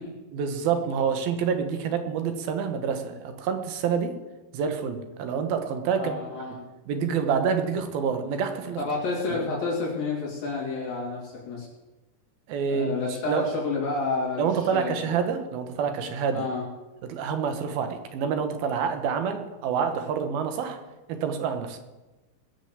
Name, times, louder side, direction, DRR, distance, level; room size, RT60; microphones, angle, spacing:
voice 1, 0.3-4.1 4.5-6.2 6.9-8.8 12.5-13.0 13.3-13.4 14.4-16.5 17.0-20.8 21.1-21.8, right 6 dB, 75° right, 7 dB, 3.1 m, -27 dB
voice 2, 5.9-6.6 7.0-7.1 8.8-11.7 12.6-15.0 16.3-16.7, left 3 dB, 65° left, -5 dB, 4.8 m, -30 dB
20.5 x 7.0 x 7.4 m, 1.1 s
omnidirectional pair, 4.3 m